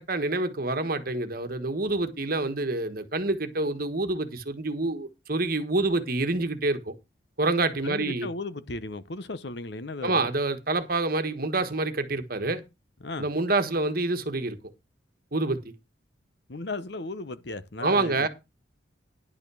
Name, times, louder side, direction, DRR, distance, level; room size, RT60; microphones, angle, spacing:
voice 1, 0.0-6.9 7.4-8.3 10.0-12.6 13.2-14.6 15.3-15.6 17.8-18.3, right 2 dB, 50° right, 1.4 m, -27 dB
voice 2, 7.8-10.3 13.0-13.3 16.5-18.3, left 2 dB, 60° left, 0.9 m, -36 dB
10.5 x 5.7 x 6.2 m
head